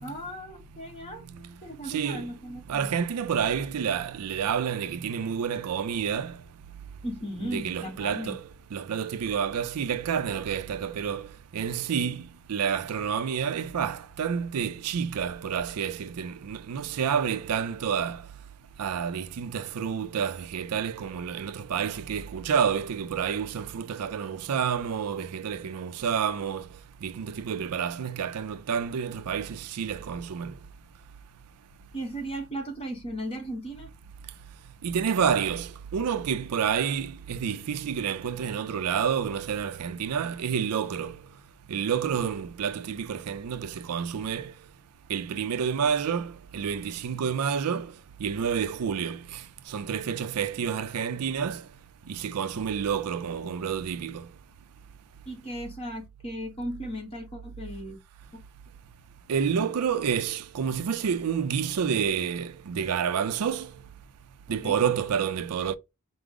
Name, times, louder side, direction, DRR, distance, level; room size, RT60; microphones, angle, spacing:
voice 1, 0.0-3.0 7.0-8.4 31.9-33.9 55.3-58.0 58.3-58.4 64.6-64.7, equal, 25° left, 1.0 m, -36 dB
voice 2, 1.9-2.3 2.7-6.4 7.4-8.4 8.7-11.3 11.5-12.2 12.5-18.2 18.8-26.7 27.0-30.5 34.8-41.2 41.7-44.5 45.1-47.9 48.2-49.4 49.7-51.6 52.1-54.3 59.3-63.7 64.5-65.8, right 7 dB, 90° right, 0.4 m, -29 dB
4.7 x 2.0 x 3.6 m
head